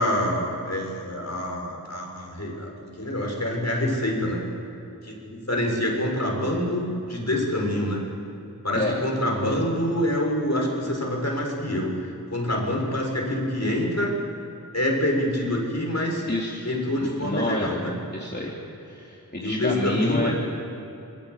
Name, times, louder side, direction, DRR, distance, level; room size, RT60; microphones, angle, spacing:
voice 1, 0.0-4.4 5.0-8.0 8.6-14.2 14.7-16.2 16.6-17.9 19.4-20.3, left 1 dB, 50° left, 0 dB, 6.8 m, -26 dB
voice 2, 16.3-16.7 17.0-17.7 18.1-18.5 18.9-20.3, left 1 dB, 30° left, -3 dB, 3.3 m, -29 dB
28.0 x 20.5 x 8.5 m, 3.0 s
wide cardioid pair, 45°, 35 cm